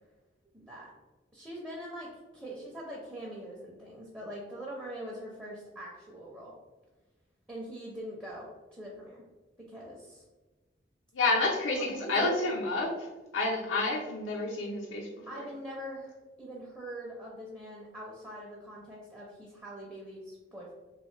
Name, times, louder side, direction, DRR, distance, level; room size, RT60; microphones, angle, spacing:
voice 1, 0.5-0.9 1.3-6.5 7.5-9.2 9.6-10.2 11.8-12.4 15.3-20.7, equal, 10° right, -4 dB, 0.5 m, -43 dB
voice 2, 11.1-12.9 13.3-15.2, left 2 dB, 90° left, -1 dB, 0.5 m, -29 dB
3.1 x 2.5 x 3.1 m, 1.2 s
head